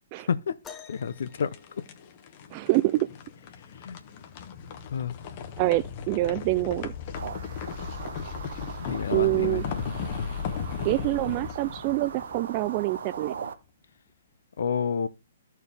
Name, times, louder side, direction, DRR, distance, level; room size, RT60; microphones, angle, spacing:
voice 1, 0.3-0.6 0.9-1.8 3.8-4.0 4.9-5.1 8.8-9.6 14.6-15.1, left 6 dB, 65° left, 0.6 m, -29 dB
sound 1, 0.6-2.5 4.2-4.3 5.1-5.3 6.2-6.3, left 7 dB, 20° left, 0.7 m, -49 dB
sound 2, 0.9-13.0, left 7 dB, 45° left, 1.1 m, -36 dB
voice 2, 2.5-3.1 5.6-6.9 9.1-9.6 10.8-13.3, right 19 dB, 35° right, 0.3 m, -26 dB
sound 3, 7.1-13.5, right 6 dB, 65° right, 0.8 m, -40 dB
13.5 x 4.6 x 3.4 m
figure-of-eight pair, 125°, 0 cm